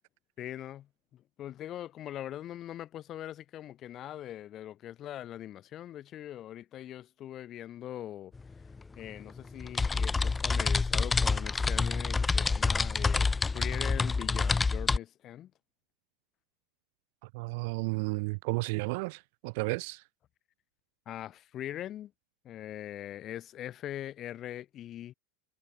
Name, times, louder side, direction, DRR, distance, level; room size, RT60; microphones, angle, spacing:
voice 1, 0.4-8.3 9.0-15.5 21.1-22.1 22.4-25.1, left 12 dB, 25° left, 5.7 m, -42 dB
sound 1, 8.4-8.5 8.7-15.0, left 4 dB, 10° left, 1.0 m, -28 dB
voice 2, 17.3-20.0, right 27 dB, 50° right, 1.6 m, -33 dB
supercardioid pair, 175°, 0 cm